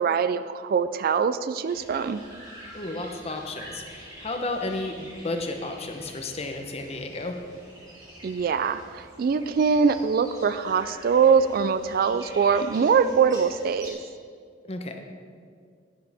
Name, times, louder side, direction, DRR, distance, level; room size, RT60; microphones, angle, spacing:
voice 1, 0.0-2.2 8.2-14.0, right 6 dB, 50° right, 13 dB, 0.3 m, -23 dB
sound 1, 1.7-13.9, right 1 dB, 20° right, 2.1 m, -46 dB
voice 2, 2.7-7.4 14.6-15.0, left 2 dB, 35° left, 5 dB, 0.8 m, -33 dB
10.5 x 9.4 x 3.5 m, 2.2 s
head